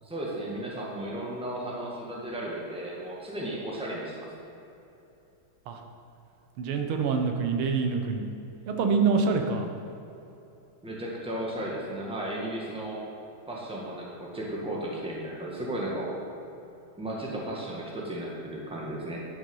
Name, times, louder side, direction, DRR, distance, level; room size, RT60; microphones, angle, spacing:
voice 1, 0.0-4.3 10.8-13.0 13.5-16.1 17.0-19.2, right 1 dB, 5° right, -4 dB, 1.4 m, -34 dB
voice 2, 6.6-8.3 8.7-9.7, right 5 dB, 90° right, 4 dB, 1.8 m, -26 dB
10.5 x 6.5 x 5.5 m, 2.8 s
omnidirectional pair, 2.3 m